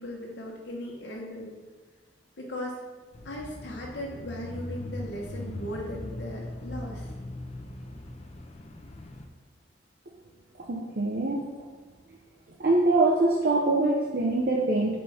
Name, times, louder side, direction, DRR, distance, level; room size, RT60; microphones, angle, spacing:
voice 1, 0.0-1.5 2.4-2.8 3.2-7.1, equal, 65° left, -2 dB, 1.0 m, -37 dB
Bicycle / Mechanisms, 3.1-9.3, left 1 dB, 35° left, 0.5 m, -40 dB
voice 2, 10.6-11.4 12.6-15.0, right 2 dB, 55° right, -2 dB, 0.6 m, -24 dB
5.0 x 4.3 x 5.6 m, 1.4 s
head